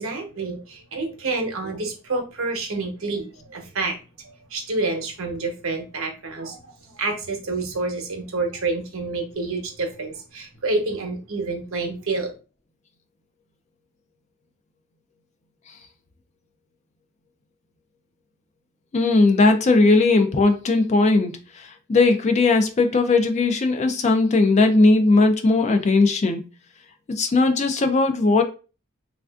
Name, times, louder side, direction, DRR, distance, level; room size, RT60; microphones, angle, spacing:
voice 1, 0.0-12.3, right 3 dB, 75° right, 0.8 m, -28 dB
voice 2, 18.9-26.4 27.1-28.4, left 3 dB, 30° left, 0.3 m, -18 dB
3.3 x 2.4 x 2.3 m
head